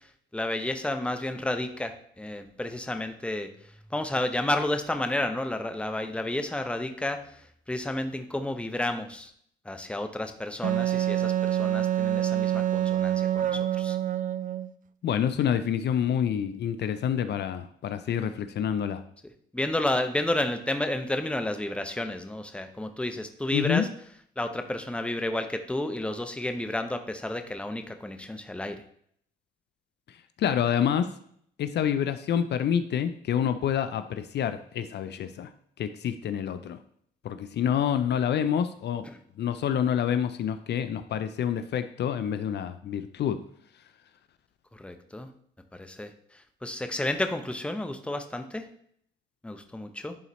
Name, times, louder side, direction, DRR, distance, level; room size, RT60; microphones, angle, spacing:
voice 1, 0.3-3.5 3.9-7.3 7.7-9.3 9.6-14.0 19.5-23.9 24.4-28.8 39.0-39.2 44.7-45.3 45.7-46.1 46.6-48.7 49.4-50.2, left 1 dB, 5° left, 7 dB, 0.7 m, -31 dB
Wind instrument woodwind instrument, 10.6-14.7, right 11 dB, 45° right, 0.4 m, -26 dB
voice 2, 15.0-19.0 23.5-23.9 30.4-31.1 31.6-35.5 35.8-36.8 37.2-39.1 39.4-43.4, left 9 dB, 60° left, 11 dB, 0.5 m, -27 dB
11.0 x 4.0 x 3.1 m, 0.65 s
cardioid pair, 90°, 20 cm